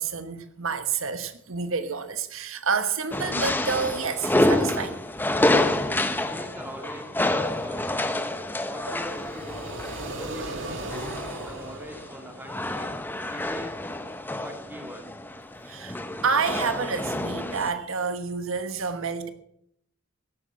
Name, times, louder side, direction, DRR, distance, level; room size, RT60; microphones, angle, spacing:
voice 1, 0.0-5.0 8.9-9.0 15.7-19.3, right 5 dB, 90° right, 1.2 m, -29 dB
sound 1, 3.1-17.7, left 1 dB, 10° left, 0.9 m, -28 dB
voice 2, 6.1-8.0 8.6-9.7 10.1-10.9 11.4-12.9 13.2-13.8 14.4-15.1, equal, 10° right, 2.5 m, -42 dB
sound 2, 8.8-12.9, right 2 dB, 65° right, 1.6 m, -37 dB
17.5 x 8.4 x 7.6 m
head